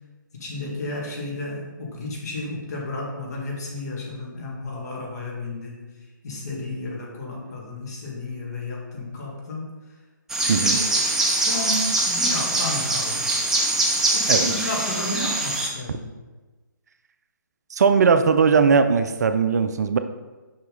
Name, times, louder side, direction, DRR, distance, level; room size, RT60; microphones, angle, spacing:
voice 1, 0.3-5.8 6.2-9.7 10.4-10.8 11.2-13.3 14.1-16.1, left 2 dB, 50° left, -3 dB, 2.1 m, -32 dB
sound 1, 10.3-15.7, right 2 dB, 5° right, 0.5 m, -23 dB
voice 2, 10.5-10.8 14.3-14.5 17.7-20.0, right 5 dB, 55° right, 9 dB, 0.5 m, -19 dB
6.6 x 5.7 x 3.9 m, 1.2 s
figure-of-eight pair, 145°, 11 cm